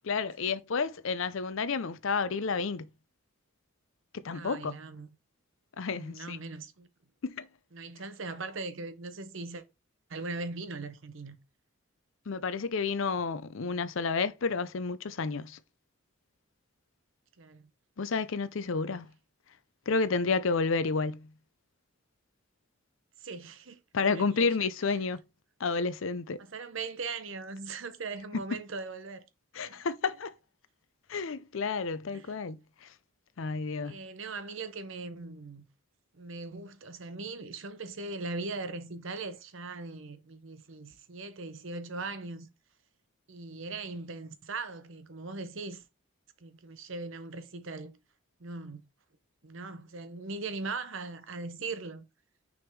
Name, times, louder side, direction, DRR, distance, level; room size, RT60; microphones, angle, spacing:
voice 1, 0.0-2.9 4.1-4.7 5.8-6.4 7.2-7.5 12.3-15.6 18.0-19.1 19.9-21.3 23.9-25.2 25.6-26.4 28.3-28.4 29.5-30.3 31.1-32.6 33.4-34.0, left 4 dB, 65° left, 0.5 m, -30 dB
voice 2, 4.3-5.1 5.9-6.9 7.7-9.6 10.1-11.4 17.4-17.6 23.2-24.6 26.4-29.3 29.6-29.8 32.1-32.3 33.8-35.6 36.1-42.5 43.3-45.8 46.4-48.0 48.4-48.8 49.4-52.1, right 3 dB, 65° right, 0.8 m, -40 dB
6.2 x 3.6 x 4.6 m
head